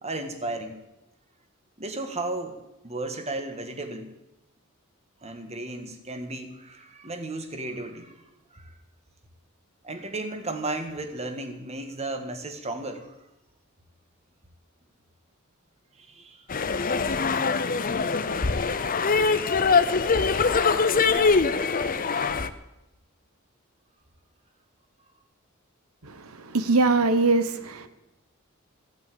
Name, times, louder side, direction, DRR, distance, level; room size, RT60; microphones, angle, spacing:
voice 1, 0.0-0.8 1.8-2.6 2.8-4.1 5.2-8.2 8.5-8.7 9.8-13.1 16.0-16.5 21.5-21.6, right 2 dB, 30° right, 6 dB, 1.7 m, -34 dB
sound 1, 16.5-22.5, left 4 dB, 40° left, 0.7 m, -23 dB
voice 2, 26.4-27.9, right 3 dB, 80° right, 10 dB, 1.2 m, -22 dB
15.0 x 8.4 x 8.5 m, 0.94 s
head